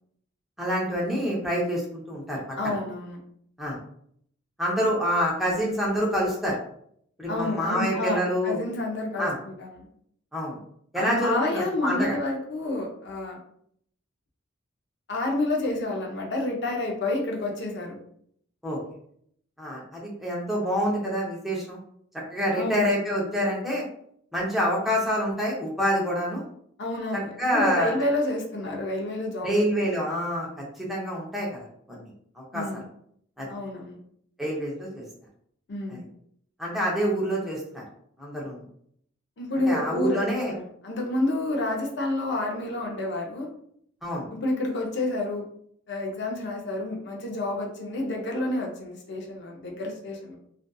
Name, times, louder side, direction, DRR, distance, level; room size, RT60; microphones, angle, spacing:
voice 1, 0.6-2.8 3.6-3.8 4.6-6.6 7.2-8.6 9.2-9.3 10.3-10.6 10.9-12.1 18.6-18.8 19.6-21.8 22.3-23.8 24.3-26.4 27.4-27.9 29.4-30.5 30.8-32.1 32.4-32.8 33.4-33.5 34.4-35.0 35.9-36.0 36.6-37.8 38.2-38.6 39.7-40.5 44.0-44.3, equal, ahead, -4 dB, 0.5 m, -27 dB
voice 2, 2.6-3.2 7.3-9.9 10.9-13.4 15.1-18.0 22.5-22.9 26.8-29.9 32.5-32.8 33.5-34.0 35.7-36.0 39.4-43.5 44.3-45.4 45.9-50.4, left 2 dB, 60° left, 0 dB, 0.5 m, -29 dB
2.5 x 2.4 x 2.2 m, 0.67 s
head